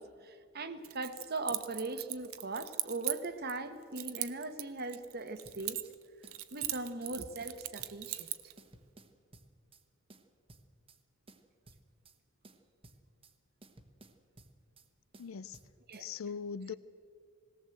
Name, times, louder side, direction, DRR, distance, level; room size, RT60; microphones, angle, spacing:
voice 1, 0.0-5.8 6.5-8.3 15.9-16.1, right 3 dB, 50° right, 10 dB, 1.2 m, -39 dB
Keys jangling, 0.8-3.6 4.0-6.0 6.3-8.5, right 15 dB, 85° right, 0.9 m, -39 dB
sound 1, 5.4-6.0 6.2-7.1 7.4-8.3 8.6-9.8 10.1-11.0 11.3-12.2 12.4-13.4 13.6-14.9 15.1-16.0, right 2 dB, 25° right, 1.2 m, -58 dB
voice 2, 15.2-15.6 16.0-16.8, left 6 dB, 80° left, 18 dB, 0.5 m, -40 dB
20.0 x 17.5 x 7.8 m, 2.2 s
head